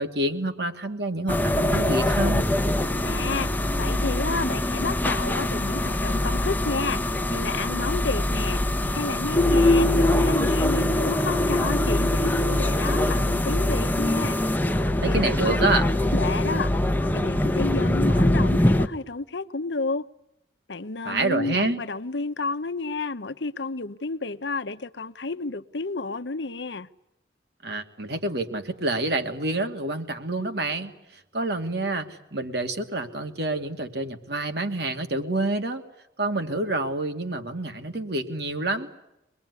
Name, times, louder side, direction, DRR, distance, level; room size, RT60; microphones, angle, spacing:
voice 1, 0.0-2.5 15.0-15.9 21.0-21.8 27.6-30.9 31.3-35.8 36.2-38.9, right 2 dB, 60° right, 2.5 m, -27 dB
sound 1, 1.3-18.9, left 1 dB, 10° left, 1.0 m, -23 dB
voice 2, 3.0-7.0 7.3-8.6 8.9-14.4 15.0-15.7 16.1-16.7 17.1-20.0 20.7-26.9, left 3 dB, 70° left, 0.9 m, -31 dB
25.0 x 21.5 x 9.6 m
head